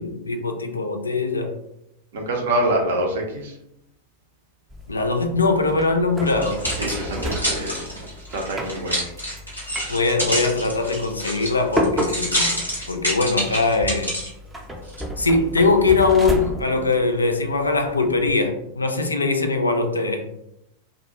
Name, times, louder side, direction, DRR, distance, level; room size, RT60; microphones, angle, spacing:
voice 1, 0.0-1.5 4.9-6.6 9.9-14.1 15.2-20.2, left 3 dB, 80° left, 5 dB, 0.3 m, -21 dB
voice 2, 2.1-3.5 6.8-7.8 8.3-9.0, right 1 dB, 60° right, 1 dB, 0.6 m, -25 dB
sound 1, 4.7-18.3, equal, 15° right, 0.5 m, -32 dB
sound 2, 6.3-14.3 14.9-15.0, equal, 90° right, 0.9 m, -27 dB
2.2 x 2.2 x 2.8 m, 0.82 s
figure-of-eight pair, 90°, 0 cm